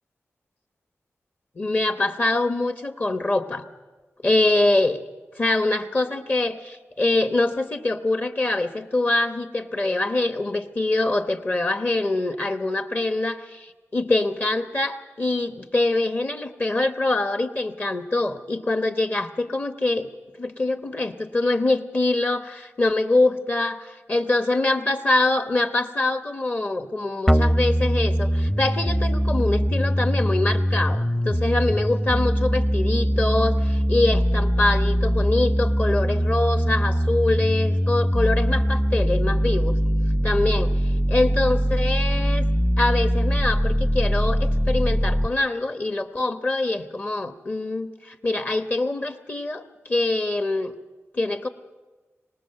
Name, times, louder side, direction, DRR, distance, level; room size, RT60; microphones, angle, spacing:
voice 1, 1.6-3.6 4.2-5.0 5.4-20.1 20.4-23.8 24.1-39.8 40.2-42.4 42.8-50.7 51.1-51.5, left 2 dB, 35° left, 8 dB, 1.0 m, -24 dB
sound 1, 27.3-45.3, equal, 10° left, 0.7 m, -22 dB
24.5 x 19.0 x 6.7 m, 1.2 s
wide cardioid pair, 145°, 5 cm